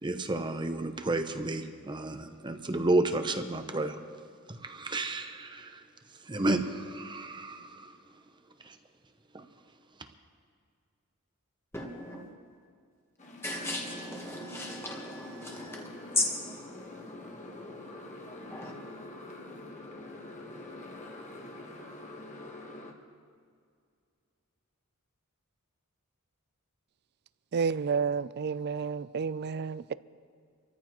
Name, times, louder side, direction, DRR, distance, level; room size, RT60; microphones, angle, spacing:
voice 1, 0.0-4.0 4.5-5.8 6.3-7.9 8.6-8.8 9.3-9.4, right 2 dB, 20° right, 7 dB, 0.7 m, -31 dB
voice 2, 11.7-12.3 13.4-15.9 16.1-16.6 17.0-17.1 18.5-18.9, left 2 dB, 10° left, -1 dB, 1.3 m, -35 dB
Motorcycle, 13.2-22.9, left 2 dB, 35° left, 1.4 m, -46 dB
voice 3, 27.5-29.9, right 5 dB, 50° right, 17 dB, 0.4 m, -30 dB
27.0 x 14.0 x 3.1 m, 2.2 s
head